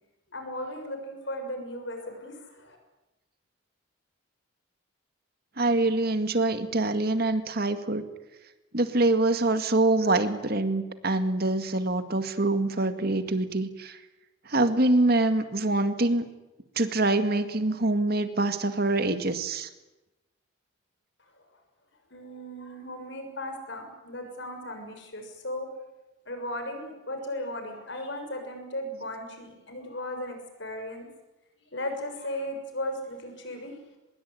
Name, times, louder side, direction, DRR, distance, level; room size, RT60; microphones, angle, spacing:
voice 1, 0.3-2.8 22.1-25.7 26.3-31.1 31.7-33.7, left 1 dB, 60° left, 5 dB, 6.6 m, -36 dB
voice 2, 5.6-8.0 8.7-14.0 14.5-16.3 16.8-19.7, right 2 dB, 50° right, 9 dB, 2.0 m, -25 dB
24.5 x 21.5 x 10.0 m, 1.0 s
head